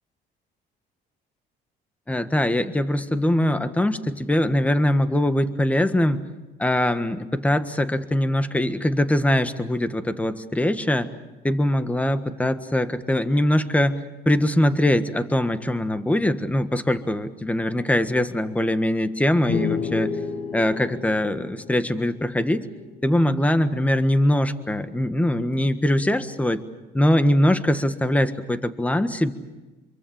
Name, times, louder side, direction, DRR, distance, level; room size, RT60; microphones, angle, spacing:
voice 1, 2.1-6.2 6.6-11.1 11.4-20.2 20.5-22.7 23.0-26.6 26.9-29.3, left 1 dB, 10° left, 11 dB, 1.5 m, -22 dB
sound 1, 19.5-23.1, left 6 dB, 50° left, 1.8 m, -31 dB
27.5 x 23.5 x 7.2 m, 1.2 s
cardioid pair, 110°, 17 cm